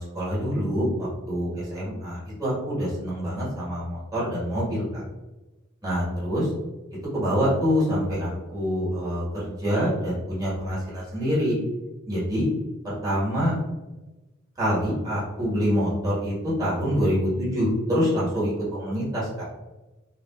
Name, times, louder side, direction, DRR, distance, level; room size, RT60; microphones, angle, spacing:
voice 1, 0.0-5.0 5.8-6.5 7.1-11.5 12.1-12.5 12.8-13.5 14.6-16.3 16.6-19.5, equal, 20° right, -8 dB, 1.3 m, -26 dB
3.7 x 2.4 x 2.3 m, 1.1 s
head